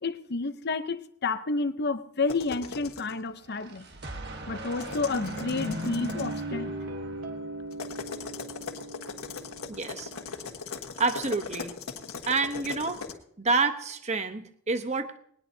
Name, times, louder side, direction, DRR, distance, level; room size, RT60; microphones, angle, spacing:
voice 1, 0.0-3.8 4.5-6.7, left 3 dB, 50° left, 0.7 m, -30 dB
sound 1, 2.3-3.1 4.6-6.4 7.7-13.1, left 5 dB, 80° left, 1.4 m, -39 dB
sound 2, 3.3-7.9, right 2 dB, 50° right, 1.3 m, -39 dB
Guitar, 5.5-10.6, right 1 dB, 80° right, 2.0 m, -39 dB
voice 2, 9.7-10.1 11.0-11.7 12.3-13.0 13.4-15.2, right 3 dB, 30° right, 0.9 m, -28 dB
20.0 x 19.0 x 2.8 m
head